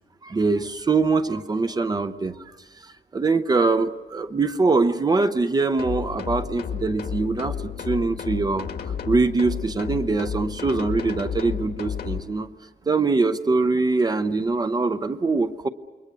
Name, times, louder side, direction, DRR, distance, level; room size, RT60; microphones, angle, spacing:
voice 1, 0.2-2.3 2.8-7.6 7.8-8.7 9.1-12.5 12.9-15.7, right 3 dB, 25° right, 9 dB, 0.7 m, -23 dB
sound 1, 5.8-12.2, left 7 dB, 75° left, 2.0 m, -32 dB
28.5 x 22.0 x 6.9 m, 1.3 s
wide cardioid pair, 165°, 16 cm